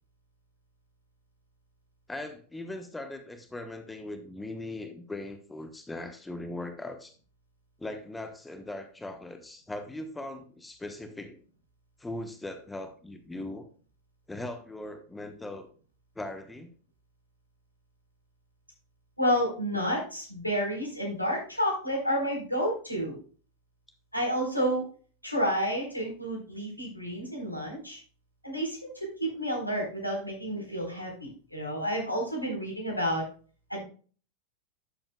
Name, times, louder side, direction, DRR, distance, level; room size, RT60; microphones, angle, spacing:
voice 1, 2.1-7.1 7.8-11.4 12.0-13.7 14.3-15.7 16.2-16.7, left 2 dB, 10° left, 8 dB, 1.1 m, -39 dB
voice 2, 19.2-23.2 24.1-24.9 25.2-28.0 28.4-33.2 33.7-33.8, equal, 90° left, -1 dB, 4.0 m, -30 dB
12.0 x 7.7 x 2.3 m, 0.40 s
figure-of-eight pair, 90°, 0 cm